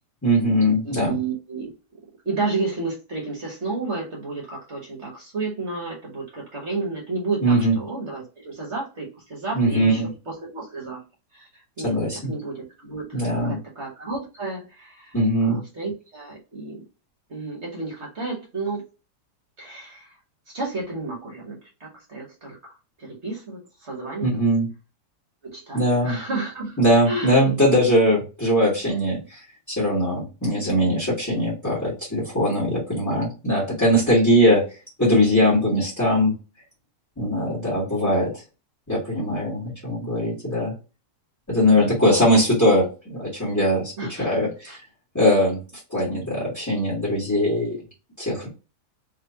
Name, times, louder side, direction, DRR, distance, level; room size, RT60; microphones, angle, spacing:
voice 1, 0.2-1.2 7.4-7.7 9.5-10.1 11.8-12.3 13.1-13.6 15.1-15.6 24.2-24.7 25.7-26.2 26.8-29.4 29.8-34.6 35.0-36.3 37.2-38.3 38.9-40.7 41.5-44.8 45.1-45.6 45.9-47.8 48.2-48.5, equal, 10° left, 1.6 m, -21 dB
voice 2, 0.8-1.7 2.2-11.0 11.3-11.5 11.8-12.0 12.3-13.1 13.4-15.1 15.4-16.8 17.3-18.8 19.6-20.1 20.5-24.4 25.4-26.8 27.0-27.4 41.7-42.1 44.0-44.3 44.7-44.8, right 3 dB, 45° right, 1.3 m, -31 dB
3.3 x 3.1 x 2.8 m
omnidirectional pair, 1.8 m